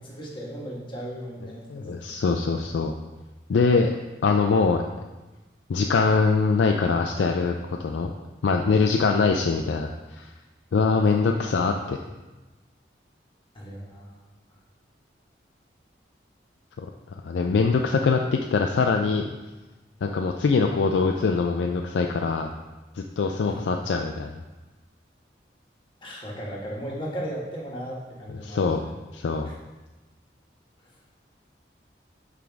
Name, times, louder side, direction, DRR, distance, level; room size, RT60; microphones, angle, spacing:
voice 1, 0.0-2.0 8.9-9.1 11.0-11.1 11.8-11.9 13.5-14.2 23.5-23.7 26.0-28.9, equal, 25° left, -4 dB, 1.3 m, -36 dB
voice 2, 1.7-2.9 3.5-3.9 4.2-4.8 5.7-8.1 8.4-10.3 10.7-12.0 16.8-16.9 17.2-19.3 20.0-22.5 23.0-24.4 28.4-28.8 29.1-29.5, left 4 dB, 80° left, 3 dB, 0.4 m, -23 dB
7.2 x 4.6 x 3.5 m, 1.2 s
head